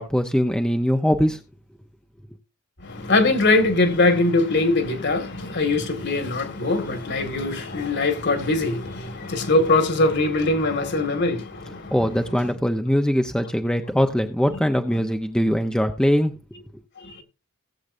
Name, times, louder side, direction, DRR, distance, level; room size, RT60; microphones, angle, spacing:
voice 1, 0.0-1.4 11.9-16.8, equal, 5° left, 0.7 m, -22 dB
voice 2, 2.8-11.9, left 2 dB, 50° left, 2.0 m, -22 dB
18.0 x 7.9 x 2.6 m
head